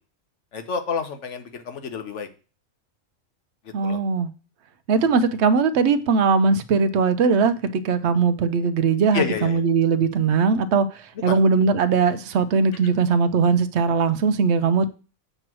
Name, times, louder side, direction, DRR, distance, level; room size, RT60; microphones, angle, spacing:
voice 1, 0.5-2.3 3.6-4.0 9.1-9.6 11.3-11.4, left 6 dB, 65° left, 1.2 m, -29 dB
voice 2, 3.7-4.3 4.9-10.9 11.2-14.9, right 5 dB, 65° right, 0.9 m, -20 dB
7.7 x 3.1 x 6.0 m
omnidirectional pair, 1.4 m